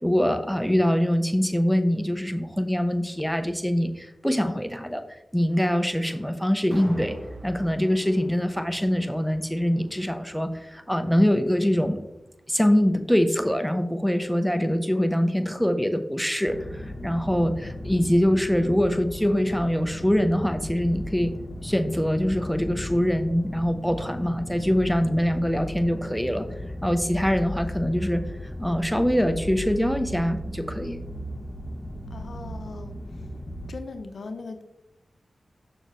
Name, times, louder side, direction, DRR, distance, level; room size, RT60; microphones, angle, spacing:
voice 1, 0.0-5.0 5.3-7.2 7.4-12.0 12.5-21.3 21.6-26.5 26.8-28.3 28.6-31.0, equal, ahead, 8 dB, 0.8 m, -24 dB
sound 1, 6.7-12.9 13.3-13.4, right 1 dB, 75° right, 1.3 m, -45 dB
sound 2, 16.4-33.7, equal, 35° left, 1.0 m, -36 dB
voice 2, 32.1-33.3 33.7-34.6, left 3 dB, 75° left, 6 dB, 0.6 m, -39 dB
6.8 x 6.4 x 3.1 m, 0.90 s
cardioid pair, 40°, 0 cm